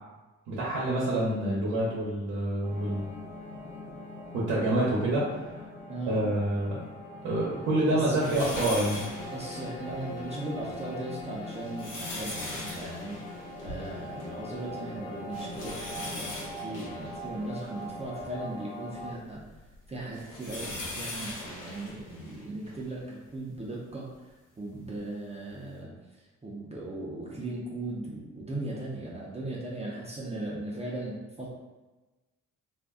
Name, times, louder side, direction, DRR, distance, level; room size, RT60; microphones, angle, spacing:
voice 1, 0.5-3.0 4.3-5.5 6.1-6.8 7.2-9.1, right 1 dB, 80° right, -6 dB, 0.8 m, -27 dB
sound 1, 2.6-19.1, left 1 dB, 25° left, 0.6 m, -42 dB
voice 2, 5.9-6.2 7.8-8.6 9.3-19.4 19.9-24.1 24.6-31.5, right 2 dB, 20° right, -5 dB, 0.6 m, -38 dB
sound 2, 8.2-10.0 10.6-10.7 11.4-14.4 14.7-14.8 15.3-18.3 19.0-22.8 23.6-23.7 25.0-25.1, left 2 dB, 90° left, 0.9 m, -40 dB
2.5 x 2.2 x 3.5 m, 1.2 s
cardioid pair, 90°, 30 cm